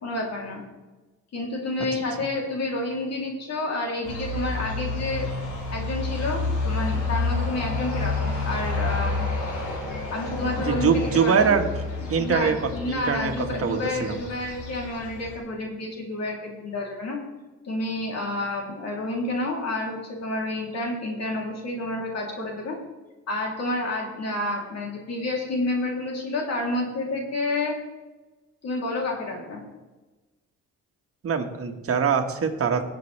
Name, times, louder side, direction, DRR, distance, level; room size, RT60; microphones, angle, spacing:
voice 1, 0.0-0.6 1.3-5.3 5.7-9.3 10.1-11.5 12.2-17.2 17.6-22.8 23.3-27.8 28.6-29.6, left 2 dB, 60° left, -1 dB, 3.3 m, -29 dB
sound 1, 4.0-15.4, left 3 dB, 80° left, 3.7 m, -30 dB
voice 2, 10.6-11.8 12.1-12.5 12.9-13.3 13.6-14.2 31.2-32.8, right 6 dB, 50° right, 4 dB, 1.6 m, -23 dB
18.5 x 7.7 x 3.4 m, 1.2 s
cardioid pair, 90°, 30 cm